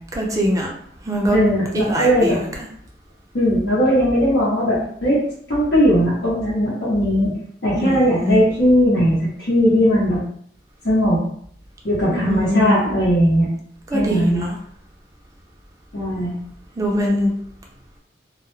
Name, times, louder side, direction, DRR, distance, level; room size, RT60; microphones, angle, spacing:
voice 1, 0.2-0.7 1.1-1.4 1.7-2.5 7.7-8.4 12.1-12.7 13.9-14.5 16.8-17.3, equal, 20° right, -1 dB, 0.5 m, -22 dB
voice 2, 1.3-2.4 3.3-5.2 5.5-7.3 7.6-10.2 10.8-11.2 11.8-13.5 13.9-14.5 15.9-16.4, equal, 70° left, -9 dB, 0.8 m, -18 dB
2.3 x 2.0 x 3.0 m, 0.65 s
head